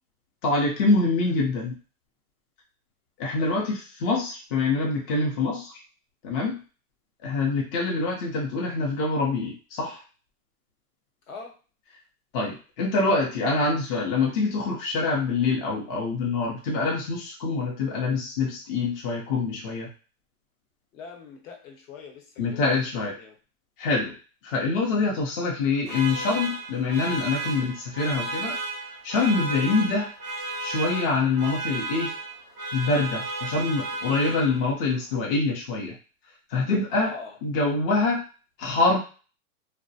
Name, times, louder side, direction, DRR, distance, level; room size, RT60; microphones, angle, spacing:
voice 1, 0.4-1.8 3.2-5.7 6.2-6.6 7.2-10.0 12.3-19.9 22.4-23.1 23.8-24.1 24.4-28.6 29.0-30.1 30.6-32.1 32.7-35.9 36.5-37.1 37.4-38.2 38.6-39.0, left 3 dB, 40° left, -2 dB, 0.5 m, -25 dB
voice 2, 11.3-11.6 20.9-23.4 36.9-37.4, left 4 dB, 60° left, 1 dB, 0.9 m, -42 dB
sound 1, 25.9-34.9, right 2 dB, 15° right, 0.4 m, -33 dB
2.4 x 2.1 x 2.6 m, 0.35 s
hypercardioid pair, 145°, 45 cm